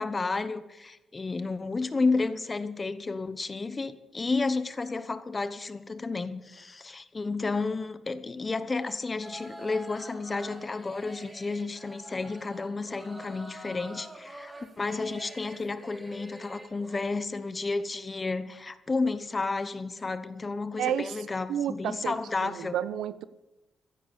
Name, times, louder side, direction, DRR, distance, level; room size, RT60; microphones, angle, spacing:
voice 1, 0.0-22.8, left 3 dB, 35° left, 1.0 m, -31 dB
sound 1, 9.2-17.0, right 1 dB, 20° right, 3.8 m, -46 dB
voice 2, 20.8-21.2 21.5-22.1 22.4-23.2, right 10 dB, 85° right, 0.7 m, -31 dB
15.5 x 8.6 x 8.5 m
cardioid pair, 70°, 0 cm